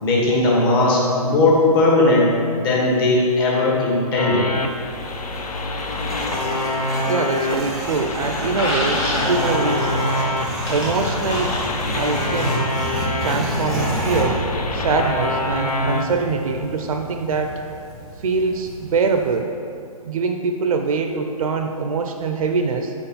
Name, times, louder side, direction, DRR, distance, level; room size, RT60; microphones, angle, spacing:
voice 1, 0.0-4.5, left 2 dB, 35° left, -4 dB, 1.5 m, -18 dB
sound 1, 4.2-16.0, left 1 dB, 75° left, 0.6 m, -26 dB
sound 2, 4.6-19.4, equal, ahead, 0.7 m, -30 dB
sound 3, 5.7-7.0 7.3-12.7, left 1 dB, 20° left, 1.2 m, -28 dB
voice 2, 7.1-9.9 10.7-11.5 11.9-12.7 13.2-14.4 14.7-17.6 18.2-19.5 20.0-22.9, right 4 dB, 65° right, 5 dB, 0.5 m, -23 dB
4.9 x 4.4 x 5.5 m, 2.5 s
hypercardioid pair, 140°, 19 cm